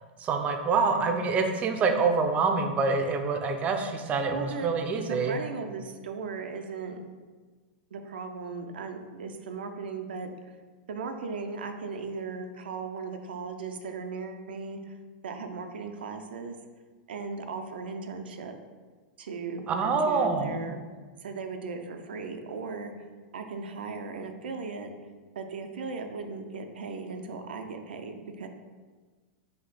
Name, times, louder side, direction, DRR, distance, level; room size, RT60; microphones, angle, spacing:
voice 1, 0.2-5.4 19.7-20.6, right 4 dB, 25° right, 5 dB, 0.5 m, -26 dB
voice 2, 0.7-1.3 4.3-7.1 7.9-10.6 10.9-15.0 15.2-16.6 17.1-18.6 19.2-20.8 21.2-22.9 23.3-24.9 25.4-28.5, right 4 dB, 85° right, 6 dB, 0.4 m, -37 dB
4.3 x 2.7 x 3.9 m, 1.4 s
hypercardioid pair, 120°, 5 cm